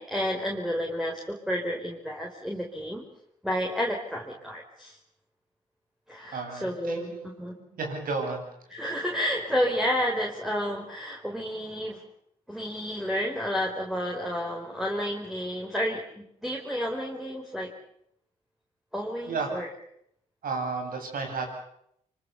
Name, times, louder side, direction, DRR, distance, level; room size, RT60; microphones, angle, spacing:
voice 1, 0.0-3.0 3.4-5.0 6.1-7.1 7.4-7.5 8.7-12.0 12.5-17.7 18.9-19.7, equal, ahead, -1 dB, 4.9 m, -30 dB
voice 2, 6.3-7.3 7.7-8.4 19.2-19.5 20.4-21.5, right 4 dB, 65° right, 3 dB, 8.0 m, -32 dB
25.5 x 24.0 x 7.1 m, 0.74 s
hypercardioid pair, 50°, 16 cm